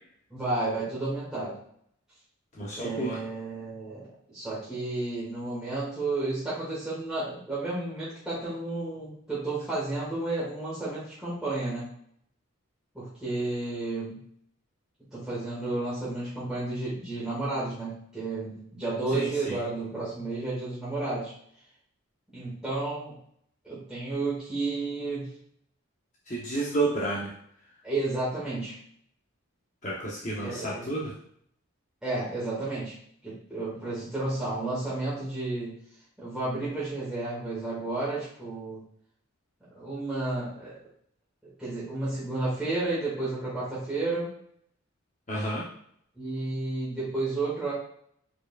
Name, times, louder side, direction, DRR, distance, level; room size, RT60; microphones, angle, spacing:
voice 1, 0.3-1.5 2.7-11.9 12.9-14.2 15.1-21.3 22.3-23.2 23.6-25.3 27.8-28.7 30.4-30.9 32.0-32.9 33.2-35.7 36.2-38.8 39.7-40.7 41.6-44.3 46.2-47.7, right 2 dB, 5° right, -11 dB, 1.9 m, -32 dB
voice 2, 2.5-3.2 19.1-19.6 26.3-27.3 29.8-31.1 45.3-45.6, right 2 dB, 35° left, -5 dB, 0.8 m, -30 dB
4.8 x 4.5 x 2.4 m, 0.65 s
head